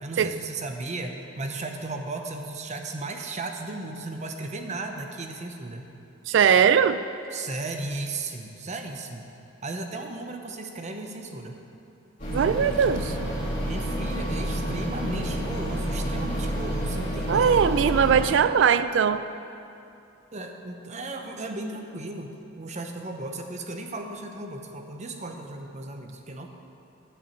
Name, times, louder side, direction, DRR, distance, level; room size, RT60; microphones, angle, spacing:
voice 1, 0.0-5.9 7.3-9.3 9.6-11.6 13.6-17.6 20.3-26.5, right 2 dB, 40° right, 4 dB, 0.8 m, -35 dB
voice 2, 6.3-7.0 12.3-13.2 17.3-19.2, right 7 dB, 70° right, 13 dB, 0.3 m, -20 dB
sound 1, 12.2-18.2, equal, 45° left, 2.7 m, -29 dB
9.9 x 5.5 x 7.3 m, 2.7 s
head